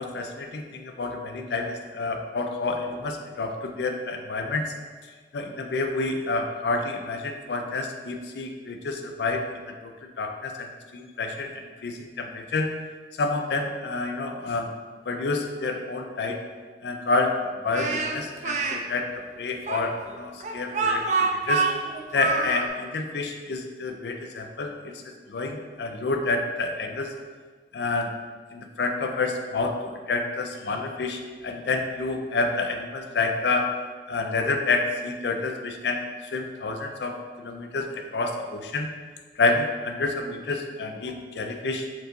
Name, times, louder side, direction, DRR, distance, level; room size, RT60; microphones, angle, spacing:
voice 1, 0.0-4.6 5.3-12.7 13.2-14.7 15.1-16.4 16.8-19.1 19.4-21.7 22.1-24.9 25.3-27.1 27.7-28.1 28.5-33.7 34.1-38.9 39.4-41.9, left 3 dB, 75° left, 4 dB, 0.4 m, -29 dB
Speech, 17.7-18.8 19.7-22.7, right 4 dB, 40° right, 0.3 m, -26 dB
4.4 x 4.0 x 2.6 m, 1.5 s
head